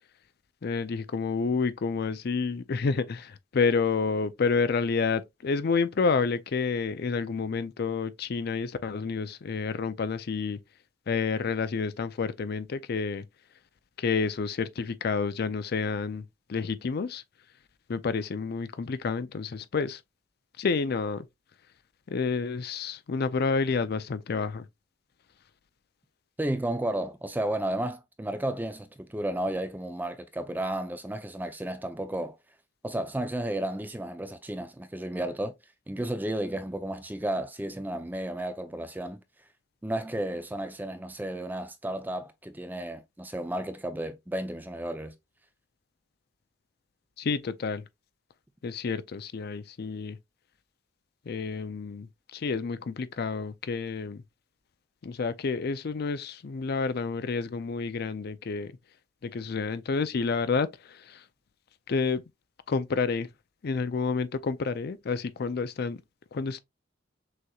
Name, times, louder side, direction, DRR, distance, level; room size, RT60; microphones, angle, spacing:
voice 1, 0.6-10.6 11.1-13.2 14.0-16.2 16.5-17.2 17.9-20.0 20.6-21.2 22.1-24.6 47.2-47.8 48.6-50.2 51.3-52.1 52.3-54.2 55.0-58.7 59.3-60.7 61.9-62.2 62.7-63.3 63.6-66.0 66.3-66.6, left 4 dB, 50° left, 0.4 m, -29 dB
voice 2, 26.4-32.4 32.8-35.5 35.9-39.2 39.8-45.1, right 1 dB, 10° right, 0.5 m, -33 dB
6.2 x 3.0 x 2.3 m
head